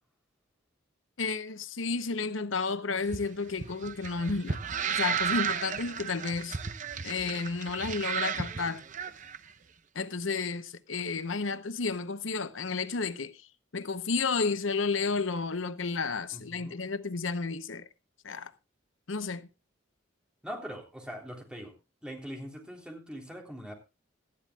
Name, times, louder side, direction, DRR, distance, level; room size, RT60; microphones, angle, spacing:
voice 1, 1.2-4.6 4.9-6.6 7.0-8.8 9.9-13.5 13.7-17.9 18.2-18.5 19.1-19.5, left 4 dB, 85° left, 0.9 m, -32 dB
sound 1, 3.0-9.4, right 7 dB, 40° right, 0.7 m, -34 dB
voice 2, 16.3-16.8 20.4-21.8 22.0-23.7, equal, 5° right, 3.3 m, -42 dB
18.5 x 13.0 x 2.4 m
head